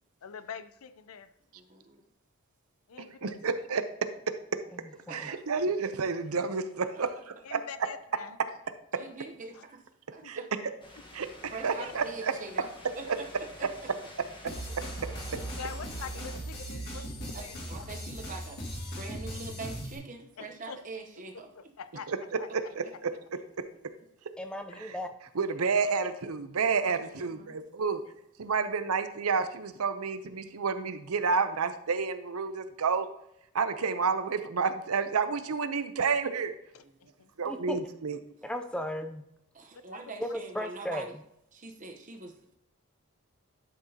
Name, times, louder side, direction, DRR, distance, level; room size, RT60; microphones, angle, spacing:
voice 1, 0.2-1.3 2.9-3.3 7.4-8.4 9.5-9.6 10.2-10.3 11.8-12.1 15.6-17.9 20.4-20.8 21.8-22.1 22.4-22.5 24.7-24.8 36.7-37.3 39.9-40.0, left 6 dB, 75° left, 12 dB, 0.5 m, -44 dB
voice 2, 1.5-2.0 5.1-5.4 6.9-7.0 8.9-9.8 10.1-10.5 11.5-12.7 12.9-13.7 14.7-14.8 17.3-21.5 26.8-27.6 36.8-37.1 39.5-41.2 41.5-42.5, right 3 dB, 35° right, 3 dB, 0.9 m, -44 dB
voice 3, 3.2-4.6 5.1-7.1 7.5-7.6 8.9-9.0 10.2-10.4 11.1-12.3 13.1-13.2 15.3-15.4 22.1-22.2 22.5-23.7 25.4-28.0 28.4-33.1 33.5-36.5 37.4-38.2, right 5 dB, 80° right, 10 dB, 0.7 m, -30 dB
voice 4, 4.7-5.3 24.4-25.1 37.4-37.8 38.4-39.2 40.2-41.1, equal, 5° left, 7 dB, 0.4 m, -36 dB
sound 1, 10.8-16.4, left 1 dB, 20° left, 1.3 m, -49 dB
sound 2, 14.5-20.0, right 1 dB, 45° left, 2.1 m, -38 dB
11.0 x 6.1 x 2.8 m, 0.78 s
head